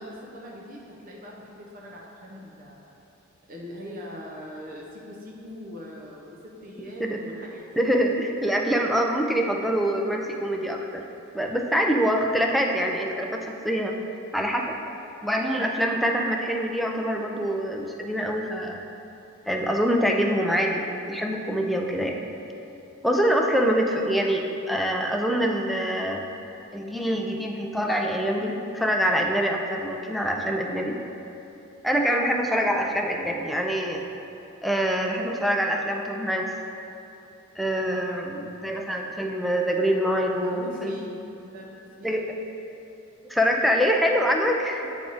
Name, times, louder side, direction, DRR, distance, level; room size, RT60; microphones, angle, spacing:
voice 1, 0.0-3.0 3.5-7.8 40.4-41.1 41.4-41.7, left 1 dB, 45° right, -2 dB, 0.6 m, -41 dB
voice 2, 7.8-11.0 11.3-13.9 14.3-14.8 15.2-18.8 19.5-22.2 23.0-26.2 26.7-31.0 31.8-34.0 34.6-36.5 37.6-40.9 42.0-42.3 43.3-44.9, equal, ahead, 1 dB, 0.4 m, -25 dB
8.9 x 3.4 x 3.9 m, 2.9 s
head